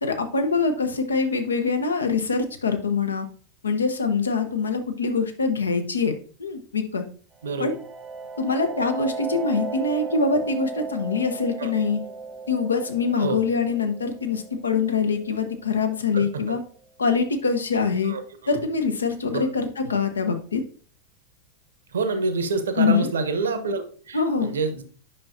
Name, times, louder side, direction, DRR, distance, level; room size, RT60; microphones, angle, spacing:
voice 1, 0.0-3.3 3.6-6.1 6.4-7.0 7.6-7.8 8.4-12.0 12.5-16.6 17.0-18.1 18.5-20.6 22.8-23.1 24.1-24.5, left 4 dB, 75° left, 7 dB, 0.9 m, -24 dB
sound 1, 7.4-16.9, right 4 dB, 15° right, 0.6 m, -36 dB
voice 2, 7.4-7.7 11.6-11.7 13.2-13.4 16.1-16.2 18.0-18.2 19.3-19.4 21.9-24.8, right 4 dB, 65° right, 8 dB, 0.9 m, -27 dB
8.7 x 5.8 x 2.7 m, 0.44 s
figure-of-eight pair, 90°, 0 cm